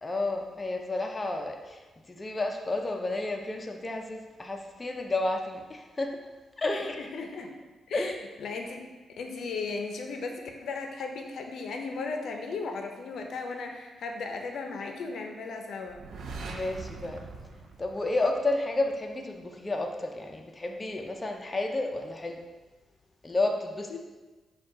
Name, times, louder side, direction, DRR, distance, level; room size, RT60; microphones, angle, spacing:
voice 1, 0.0-1.8 2.1-6.2 6.6-7.0 7.9-8.1 16.4-17.2 17.8-22.4 23.2-24.0, left 2 dB, 25° left, 3 dB, 0.5 m, -31 dB
voice 2, 6.7-7.5 7.9-8.9 9.2-16.0 23.9-24.0, left 4 dB, 75° left, 3 dB, 0.5 m, -36 dB
sound 1, 15.9-18.7, right 3 dB, 75° right, 0.5 m, -42 dB
4.9 x 2.3 x 4.8 m, 1.2 s
cardioid pair, 85°, 0 cm